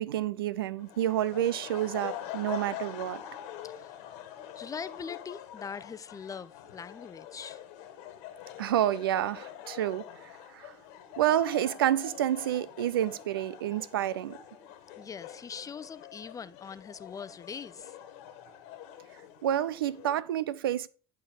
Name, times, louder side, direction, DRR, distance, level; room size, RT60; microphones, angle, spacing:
voice 1, 0.0-3.2 8.6-10.7 11.2-14.4 19.4-20.9, right 12 dB, 85° right, 0.4 m, -29 dB
sound 1, 0.8-20.2, left 11 dB, 70° left, 1.5 m, -45 dB
voice 2, 3.6-4.0 4.6-7.6 15.0-18.0, left 6 dB, 30° left, 0.7 m, -42 dB
11.0 x 4.5 x 5.0 m
hypercardioid pair, 70°, 12 cm